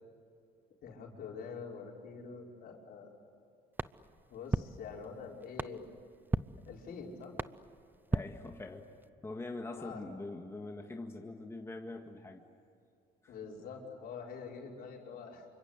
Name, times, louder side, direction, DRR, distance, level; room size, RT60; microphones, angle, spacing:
voice 1, 0.8-3.1 4.3-5.9 6.7-7.4 9.7-10.0 13.3-15.5, left 5 dB, 65° left, -1 dB, 5.7 m, -45 dB
sound 1, 3.7-9.1, right 2 dB, 10° right, 0.6 m, -39 dB
voice 2, 8.1-8.9 9.2-12.4 13.2-13.3, left 2 dB, 15° left, 3 dB, 1.9 m, -43 dB
28.5 x 24.5 x 8.2 m, 2.7 s
cardioid pair, 110°, 17 cm